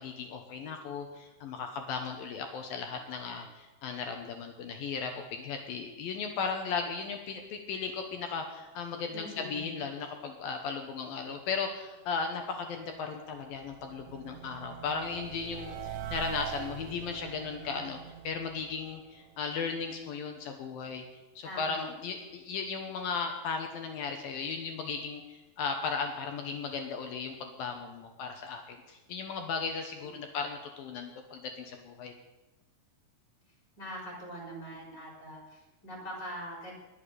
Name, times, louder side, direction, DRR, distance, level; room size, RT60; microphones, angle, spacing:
voice 1, 0.0-18.0 18.2-21.0 21.4-32.1, left 5 dB, 70° left, 4 dB, 2.5 m, -36 dB
voice 2, 9.1-9.8 21.4-21.8 30.0-30.3 33.8-36.7, equal, 25° left, -2 dB, 4.3 m, -43 dB
sound 1, 12.6-19.8, right 9 dB, 80° right, 3.2 m, -44 dB
20.5 x 7.1 x 6.7 m, 1.1 s
omnidirectional pair, 4.9 m